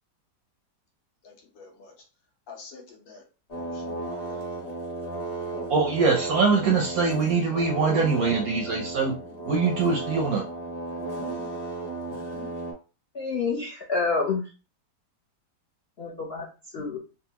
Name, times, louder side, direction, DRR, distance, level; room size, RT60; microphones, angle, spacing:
voice 1, 1.2-1.9 2.5-3.2 3.5-3.9 4.2-4.6, left 4 dB, 80° left, 0 dB, 1.7 m, -48 dB
sound 1, 3.5-12.7, right 2 dB, 35° left, 1.3 m, -34 dB
voice 2, 5.7-9.2 9.5-10.4, right 4 dB, 70° right, 2 dB, 0.8 m, -23 dB
voice 3, 13.1-14.4 16.0-16.5 16.7-17.0, left 4 dB, 60° left, -2 dB, 0.6 m, -28 dB
3.9 x 2.2 x 2.8 m, 0.33 s
omnidirectional pair, 2.0 m